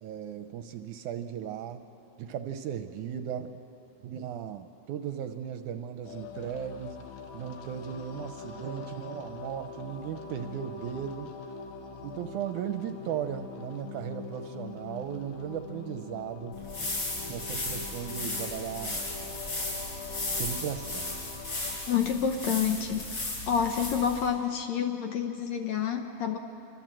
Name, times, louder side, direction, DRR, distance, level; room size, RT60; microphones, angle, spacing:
voice 1, 0.0-1.8 2.2-3.6 4.0-7.0 7.3-11.3 12.0-16.9 17.3-19.0 20.3-21.2, right 9 dB, 75° right, 9 dB, 1.9 m, -37 dB
sound 1, 6.0-21.8, left 5 dB, 90° left, 3.2 m, -43 dB
sound 2, 16.5-24.3, left 2 dB, 35° left, 5.7 m, -35 dB
voice 2, 21.9-23.1 23.5-26.4, left 7 dB, 65° left, 5 dB, 1.9 m, -28 dB
27.5 x 24.0 x 7.6 m, 2.9 s
omnidirectional pair, 4.0 m